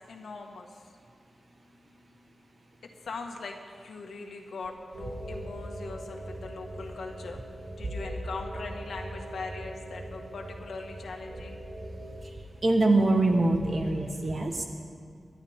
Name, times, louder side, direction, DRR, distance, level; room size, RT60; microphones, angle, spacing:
voice 1, 0.1-0.7 3.0-7.4 7.8-11.6, left 4 dB, 90° left, 2 dB, 1.7 m, -40 dB
sound 1, 4.9-12.2, right 1 dB, 65° right, 4.4 m, -41 dB
voice 2, 12.6-14.6, right 2 dB, 40° right, 3 dB, 1.3 m, -24 dB
27.5 x 12.0 x 3.7 m, 2.2 s
wide cardioid pair, 155°, 0 cm